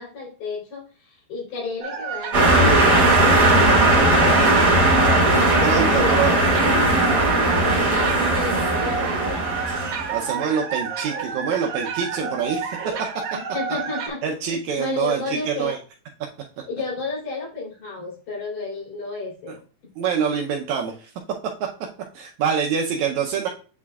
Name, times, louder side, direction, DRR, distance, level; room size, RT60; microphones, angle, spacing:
voice 1, 0.0-4.9 5.3-7.3 7.6-9.5 12.2-12.4 13.3-14.3 14.8-15.8 16.7-19.6, left 3 dB, 60° left, -4 dB, 4.9 m, -32 dB
sound 1, 1.8-14.1, right 6 dB, 60° right, 2.7 m, -30 dB
sound 2, 2.3-10.2, right 2 dB, 35° right, 2.0 m, -18 dB
voice 2, 5.6-6.4 10.1-13.1 14.2-15.8 20.0-21.1 22.1-23.5, right 7 dB, 75° right, 1 dB, 1.7 m, -25 dB
8.5 x 4.7 x 2.3 m, 0.38 s
omnidirectional pair, 4.1 m